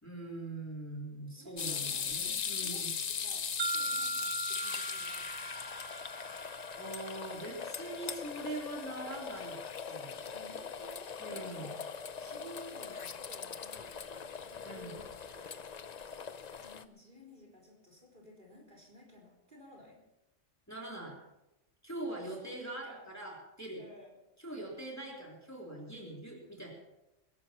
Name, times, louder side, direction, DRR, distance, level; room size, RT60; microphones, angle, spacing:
voice 1, 0.0-2.9 6.8-10.2 11.2-11.7 14.6-15.0 20.7-21.2 21.8-23.8 24.4-26.7, right 2 dB, 15° left, -2 dB, 3.3 m, -42 dB
voice 2, 1.4-2.1 2.5-5.5 10.2-20.0 22.4-23.0 23.8-24.1, equal, 40° right, -1 dB, 4.3 m, -55 dB
sound 1, 1.6-16.8, left 6 dB, 45° left, 0.6 m, -40 dB
sound 2, 3.6-7.6, right 3 dB, 65° right, 1.2 m, -39 dB
22.0 x 12.0 x 4.3 m, 0.94 s
omnidirectional pair, 1.3 m